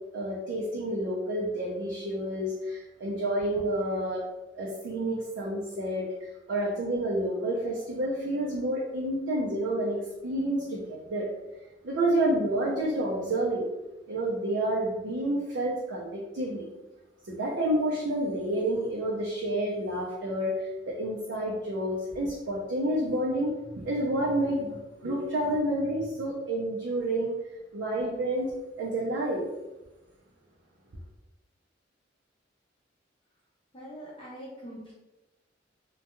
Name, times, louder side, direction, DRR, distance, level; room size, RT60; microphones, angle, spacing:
voice 1, 0.1-4.3 4.5-6.1 6.5-11.3 11.8-13.6 14.1-16.6 17.3-27.3 27.7-28.5 28.8-29.4, right 1 dB, 75° right, -5 dB, 0.5 m, -29 dB
voice 2, 33.7-34.9, equal, 30° left, -5 dB, 0.5 m, -43 dB
2.2 x 2.2 x 2.9 m, 1.0 s
head